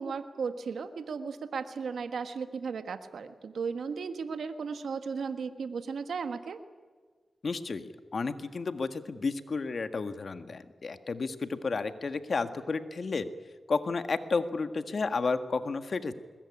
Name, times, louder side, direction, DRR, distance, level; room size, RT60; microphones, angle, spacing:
voice 1, 0.0-6.6, right 5 dB, 85° right, 9 dB, 1.4 m, -35 dB
voice 2, 7.4-13.3 13.7-16.1, left 4 dB, 65° left, 9 dB, 1.7 m, -32 dB
21.0 x 21.0 x 9.9 m, 1.5 s
cardioid pair, 50°, 0 cm